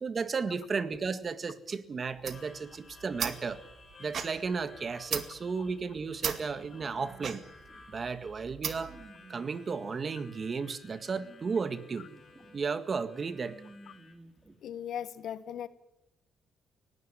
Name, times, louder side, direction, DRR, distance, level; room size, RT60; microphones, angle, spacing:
voice 1, 0.0-3.6 4.0-7.4 7.9-9.0 9.3-12.1 12.5-13.6, right 5 dB, 40° right, 13 dB, 1.7 m, -34 dB
sound 1, 2.1-9.0, right 7 dB, 60° right, 2.2 m, -39 dB
Harmonica, 2.3-14.1, left 4 dB, 40° left, 6.9 m, -56 dB
sound 2, 5.5-14.6, right 2 dB, 20° right, 2.9 m, -56 dB
voice 2, 14.6-15.7, left 9 dB, 70° left, 15 dB, 1.3 m, -38 dB
19.5 x 16.5 x 9.8 m, 0.83 s
cardioid pair, 90°, 0 cm